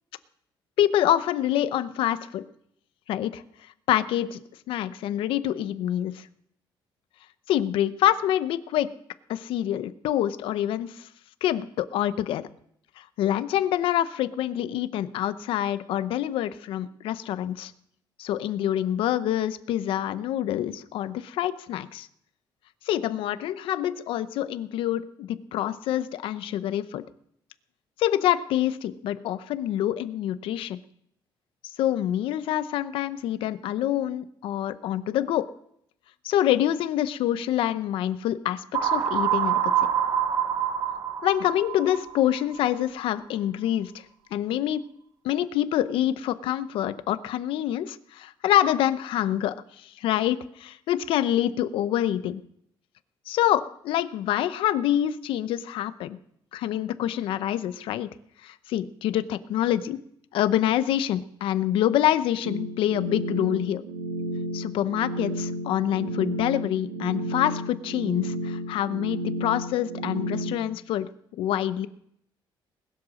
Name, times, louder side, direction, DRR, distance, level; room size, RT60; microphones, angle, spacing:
voice 1, 0.8-2.4 3.1-3.4 3.9-4.4 4.7-6.2 7.5-8.9 9.3-11.1 11.4-12.5 13.0-17.7 18.2-22.1 22.9-27.0 28.0-30.8 31.8-35.5 36.2-39.6 41.2-43.9 44.3-44.8 45.2-52.4 53.3-56.2 56.5-58.1 58.4-60.0 60.3-63.8 64.5-71.1 71.4-71.9, left 12 dB, 90° left, 13 dB, 0.7 m, -26 dB
sound 1, 38.7-42.6, right 9 dB, 40° right, 0.8 m, -26 dB
sound 2, 62.4-70.5, right 1 dB, 85° right, 2.0 m, -32 dB
20.5 x 7.8 x 6.4 m, 0.70 s
cardioid pair, 145°, 9 cm